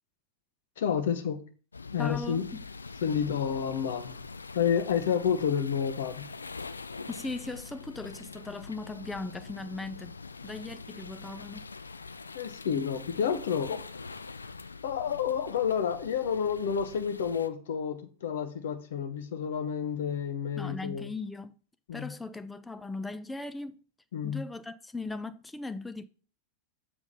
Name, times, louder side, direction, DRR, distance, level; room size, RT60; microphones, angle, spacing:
voice 1, 0.8-1.4 1.9-2.4 3.0-4.2 4.5-6.3 12.3-13.8 14.8-21.1 21.9-22.1 24.1-24.4, left 7 dB, 60° left, 0.9 m, -30 dB
sound 1, 1.7-17.5, left 4 dB, 75° left, 0.3 m, -44 dB
voice 2, 2.0-2.6 7.1-11.6 20.6-21.6 21.9-23.8 24.2-26.1, left 3 dB, 10° left, 0.5 m, -38 dB
7.2 x 5.1 x 4.1 m
figure-of-eight pair, 90°, 0 cm